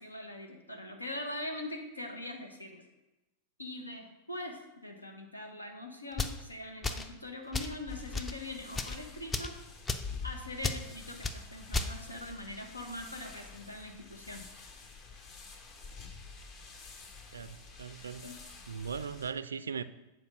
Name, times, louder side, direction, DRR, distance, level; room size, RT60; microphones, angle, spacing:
voice 1, 0.0-2.9 3.6-9.5 10.2-14.4 18.2-18.3, left 1 dB, 85° left, 1.1 m, -42 dB
sound 1, 6.1-6.4 6.8-7.1 7.5-7.8 8.1-8.3 8.7-9.0 9.3-9.5 9.9-10.1 10.6-10.8 11.2-11.4 11.7-11.9, left 3 dB, 20° left, 0.5 m, -33 dB
sound 2, 7.9-19.3, left 5 dB, 35° left, 1.1 m, -48 dB
voice 2, 17.3-18.2 18.7-19.8, right 6 dB, 70° right, 0.3 m, -39 dB
8.0 x 4.7 x 6.1 m
figure-of-eight pair, 90°, 0 cm